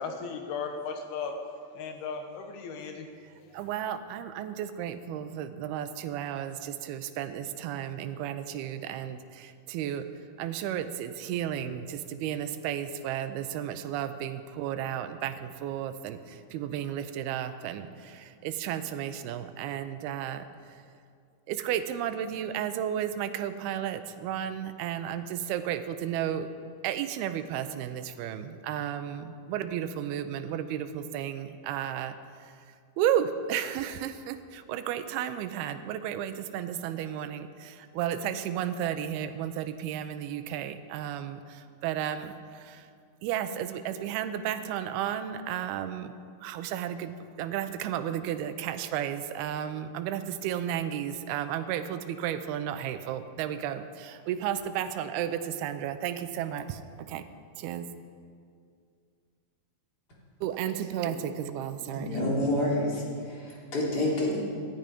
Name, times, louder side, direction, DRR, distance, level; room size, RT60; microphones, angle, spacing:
voice 1, 0.0-1.3 1.7-3.1, left 5 dB, 80° left, 5 dB, 3.1 m, -36 dB
voice 2, 3.5-10.1 10.4-20.8 21.5-26.5 26.8-42.9 43.2-46.1 46.4-57.2 57.6-57.9 60.4-62.2, right 10 dB, 85° right, 10 dB, 2.6 m, -33 dB
voice 3, 61.9-64.4, left 1 dB, 25° left, -4 dB, 3.3 m, -28 dB
17.0 x 12.5 x 5.3 m, 2.2 s
omnidirectional pair, 4.6 m